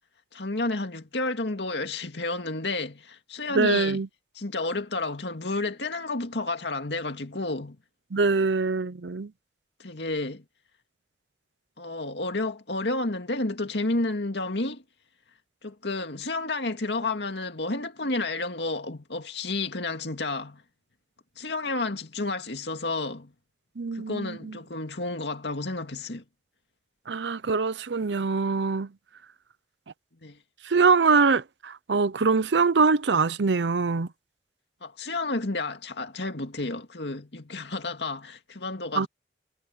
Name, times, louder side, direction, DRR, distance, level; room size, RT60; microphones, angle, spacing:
voice 1, 0.3-4.0 4.4-7.8 9.8-10.5 11.8-14.8 15.6-20.6 21.4-23.3 23.9-26.2 30.2-30.4 34.8-39.1, left 2 dB, 80° left, 2.2 m, -31 dB
voice 2, 3.5-4.1 8.1-9.3 23.8-24.6 27.1-28.9 30.6-34.1 39.0-39.1, right 4 dB, 80° right, 0.7 m, -23 dB
head